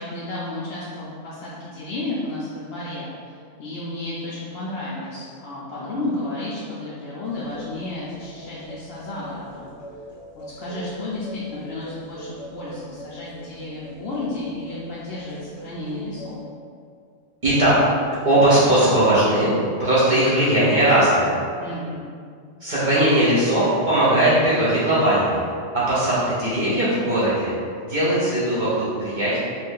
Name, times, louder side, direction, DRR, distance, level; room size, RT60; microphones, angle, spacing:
voice 1, 0.0-9.7 10.4-16.3 21.6-22.0, left 2 dB, 65° left, -8 dB, 0.7 m, -32 dB
sound 1, 7.2-16.4, equal, 25° left, 0.7 m, -41 dB
voice 2, 17.4-17.8 18.2-19.5 19.8-21.3 22.6-25.4 25.7-27.5 27.8-29.4, right 1 dB, 45° right, -10 dB, 0.8 m, -19 dB
2.6 x 2.4 x 3.6 m, 2.2 s
omnidirectional pair, 1.3 m